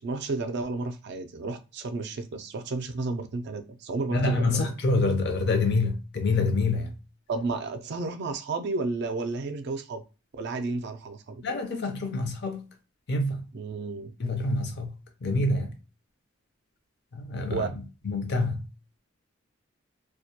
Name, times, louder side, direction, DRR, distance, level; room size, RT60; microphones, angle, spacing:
voice 1, 0.0-4.6 7.3-10.0 10.4-11.4 13.5-14.1 17.5-17.7, right 3 dB, 55° right, 0.4 m, -32 dB
voice 2, 4.1-6.9 11.4-12.7 13.1-13.4 14.2-14.9 15.2-15.7 17.1-17.7 18.0-18.6, left 2 dB, 55° left, 0.6 m, -26 dB
2.2 x 2.1 x 2.7 m
head